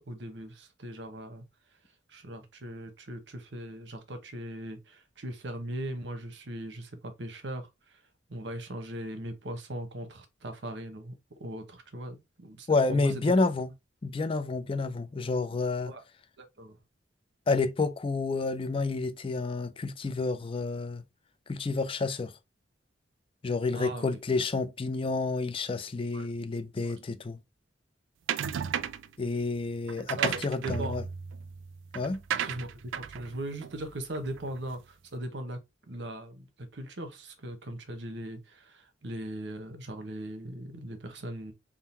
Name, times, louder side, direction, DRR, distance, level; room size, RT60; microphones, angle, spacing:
voice 1, 0.1-1.4 2.1-8.0 8.3-11.1 11.4-13.2 15.8-16.0 16.4-16.8 23.7-24.1 26.1-26.3 26.8-26.9 30.0-31.0 32.4-35.6 35.9-41.5, right 1 dB, 65° right, 1.0 m, -39 dB
voice 2, 12.7-13.7 14.0-15.9 17.5-21.0 21.5-22.3 23.4-27.4 29.2-31.0 31.9-32.2, left 3 dB, 30° left, 0.4 m, -29 dB
sound 1, 28.3-29.1 29.9-34.6, right 8 dB, 85° right, 0.4 m, -34 dB
3.7 x 2.1 x 4.2 m
head